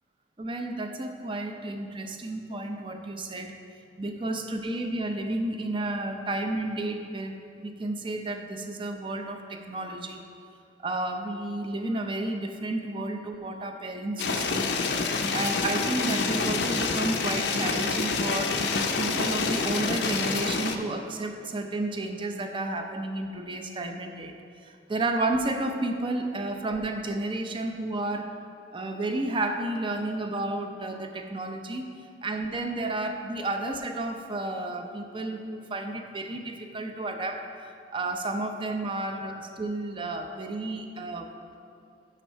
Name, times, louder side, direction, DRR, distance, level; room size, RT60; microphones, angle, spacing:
voice 1, 0.4-3.5 4.0-10.2 10.8-18.6 19.0-24.3 24.7-28.3 28.7-31.9 32.2-37.4 37.9-41.3, right 2 dB, 30° right, 4 dB, 0.6 m, -32 dB
sound 1, 14.2-20.8, left 4 dB, 70° left, 0.6 m, -27 dB
7.1 x 5.9 x 5.5 m, 2.4 s
head